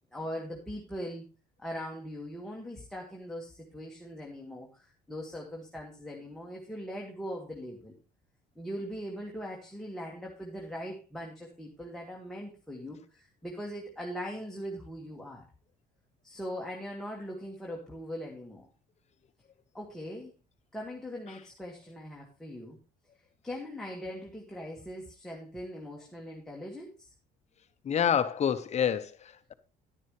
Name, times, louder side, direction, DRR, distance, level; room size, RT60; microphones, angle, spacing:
voice 1, 0.1-1.2 1.6-8.0 8.6-15.5 16.2-18.7 19.7-20.3 20.7-22.8 23.4-27.1, equal, 5° left, 1.9 m, -40 dB
voice 2, 27.8-29.5, left 8 dB, 40° left, 0.9 m, -28 dB
11.0 x 9.5 x 3.3 m
cardioid pair, 110°, 17 cm